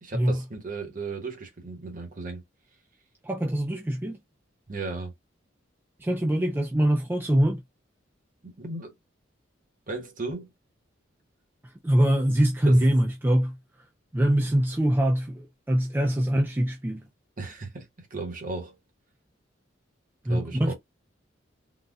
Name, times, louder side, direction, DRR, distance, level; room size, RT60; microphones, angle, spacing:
voice 1, 0.0-2.4 4.7-5.1 8.4-8.9 9.9-10.5 12.7-12.8 17.4-18.7 20.3-20.7, right 3 dB, 45° right, 1.0 m, -35 dB
voice 2, 3.2-4.2 6.0-7.6 11.6-13.6 14.1-17.0 20.2-20.7, right 1 dB, 10° right, 0.3 m, -23 dB
3.9 x 2.2 x 2.3 m
head